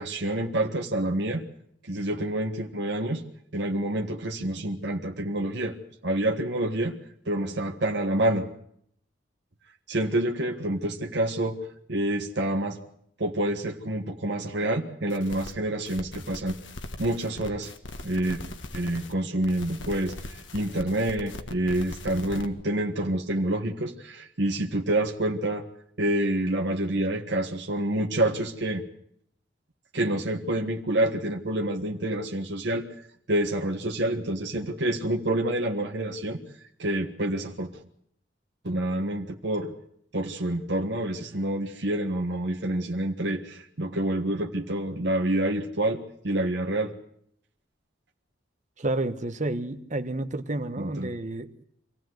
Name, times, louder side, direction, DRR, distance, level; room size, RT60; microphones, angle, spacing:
voice 1, 0.0-1.4 1.9-3.2 3.5-5.8 6.0-6.9 7.2-8.5 9.9-11.6 11.9-12.8 13.2-16.6 17.0-17.7 18.0-18.4 18.7-20.1 20.5-25.6 26.0-28.8 29.9-32.9 33.3-36.4 36.8-37.7 38.6-39.7 40.1-46.9 50.8-51.1, right 1 dB, 65° right, 2 dB, 1.5 m, -27 dB
sound 1, 15.1-15.5 15.9-19.1 19.4-22.5, left 2 dB, 90° left, 1.8 m, -40 dB
voice 2, 48.8-51.6, right 2 dB, 40° right, 9 dB, 1.3 m, -30 dB
24.5 x 16.0 x 7.9 m, 0.69 s
head